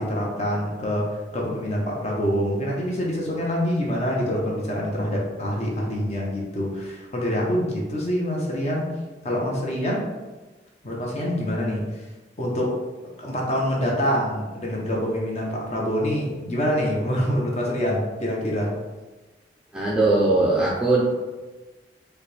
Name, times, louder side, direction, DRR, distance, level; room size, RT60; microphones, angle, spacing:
voice 1, 0.0-8.9 9.2-10.0 10.8-11.8 12.4-12.7 13.2-18.7, equal, 35° left, -2 dB, 0.7 m, -25 dB
voice 2, 19.7-21.0, right 2 dB, 5° right, -5 dB, 0.5 m, -20 dB
4.3 x 2.2 x 3.3 m, 1.2 s
head